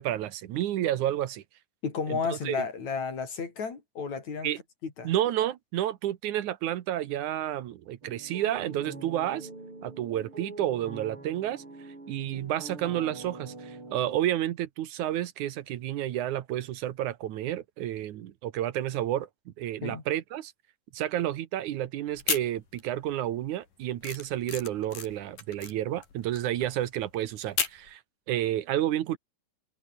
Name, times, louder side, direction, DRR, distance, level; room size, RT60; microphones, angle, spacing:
voice 1, 0.0-1.4 2.1-2.6 4.4-4.6 5.0-9.5 9.8-11.6 12.1-20.5 20.9-28.0 28.3-29.2, right 12 dB, 75° right, 2.5 m, -30 dB
voice 2, 1.8-4.5 4.8-5.1 19.8-20.0, left 5 dB, 60° left, 5.3 m, -32 dB
sound 1, 8.0-14.2, right 2 dB, 40° right, 8.8 m, -44 dB
sound 2, 22.1-23.1 23.4-27.9, left 7 dB, 80° left, 5.2 m, -34 dB
omnidirectional pair, 3.7 m